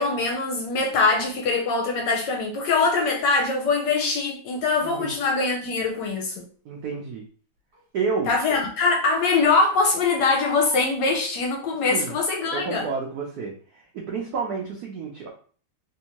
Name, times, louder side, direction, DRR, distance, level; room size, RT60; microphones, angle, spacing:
voice 1, 0.0-6.5 8.3-12.9, left 4 dB, 70° left, 1 dB, 1.1 m, -23 dB
Crying sobbing, 3.3-3.5 5.9-6.1 7.7-7.8 8.3-8.4 8.7-8.8 9.8-10.9 11.8-12.2 12.7-12.8, equal, 40° right, 1.2 m, -42 dB
voice 2, 4.8-5.1 6.6-7.2 7.9-8.3 11.9-12.1 12.5-15.3, right 5 dB, 80° right, 0 dB, 0.8 m, -30 dB
3.5 x 2.7 x 2.9 m, 0.43 s
omnidirectional pair, 2.3 m